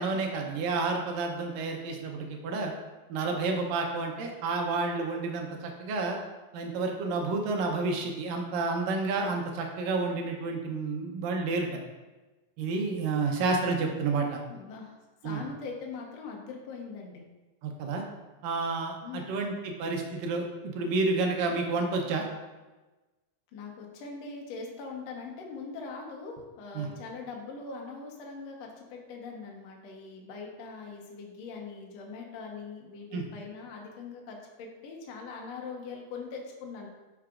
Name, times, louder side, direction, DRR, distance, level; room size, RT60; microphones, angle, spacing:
voice 1, 0.0-2.7 3.1-6.2 6.5-11.8 12.6-14.4 15.2-15.4 17.6-18.0 18.4-22.3 26.8-26.9 33.1-33.2, right 3 dB, 75° right, 2 dB, 2.4 m, -30 dB
voice 2, 14.5-14.9 15.2-17.3 19.0-19.4 23.5-36.9, left 4 dB, 65° left, 0 dB, 1.7 m, -41 dB
9.8 x 5.7 x 2.5 m, 1.2 s
omnidirectional pair, 4.2 m